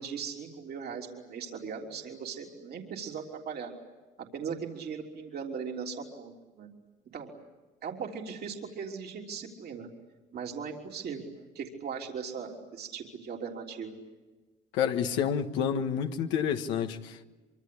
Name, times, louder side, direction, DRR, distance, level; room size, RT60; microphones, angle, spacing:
voice 1, 0.0-3.7 4.2-6.7 7.1-7.3 7.8-9.9 10.3-11.2 11.6-14.0, right 6 dB, 60° right, 3.5 m, -38 dB
voice 2, 14.7-17.2, left 8 dB, 85° left, 1.5 m, -29 dB
25.0 x 24.0 x 8.6 m
supercardioid pair, 75°, 19 cm